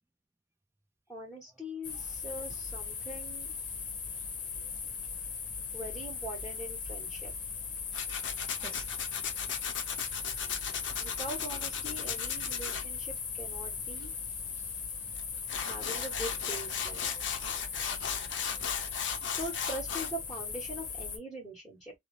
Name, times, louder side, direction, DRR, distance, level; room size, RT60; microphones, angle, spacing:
voice 1, 1.1-3.5 5.7-7.3 11.0-14.1 15.5-17.1 19.2-21.9, right 1 dB, ahead, 1.0 m, -42 dB
sound 1, 1.8-21.2, left 5 dB, 45° left, 0.7 m, -38 dB
Tools, 7.9-12.8 15.2-15.3 15.5-20.1, left 8 dB, 80° left, 0.5 m, -36 dB
voice 2, 8.0-8.9 10.3-11.1 14.5-14.7, right 3 dB, 15° right, 0.4 m, -54 dB
2.5 x 2.0 x 2.9 m
head